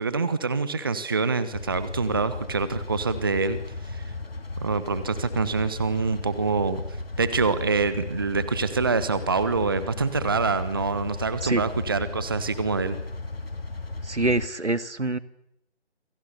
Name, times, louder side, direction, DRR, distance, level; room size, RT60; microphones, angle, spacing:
voice 1, 0.0-3.6 3.9-4.0 4.6-6.8 7.2-13.0, right 4 dB, 20° right, 14 dB, 1.1 m, -25 dB
sound 1, 1.5-14.5, left 2 dB, 60° left, 3.6 m, -35 dB
voice 2, 14.0-15.2, right 2 dB, 80° right, 13 dB, 2.0 m, -25 dB
29.5 x 27.5 x 6.8 m, 0.78 s
figure-of-eight pair, 160°, 34 cm